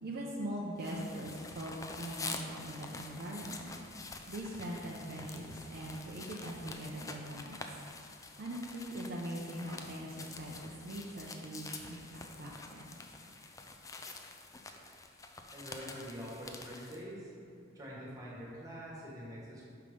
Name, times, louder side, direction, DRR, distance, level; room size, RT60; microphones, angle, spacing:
voice 1, 0.0-3.7 4.3-7.6 8.4-13.0, right 1 dB, 50° right, -3 dB, 0.6 m, -41 dB
sound 1, 0.8-17.0, left 3 dB, 15° left, 0.4 m, -47 dB
voice 2, 15.5-17.3 17.7-19.6, equal, 20° right, -6 dB, 1.5 m, -45 dB
5.7 x 5.1 x 5.2 m, 2.4 s
head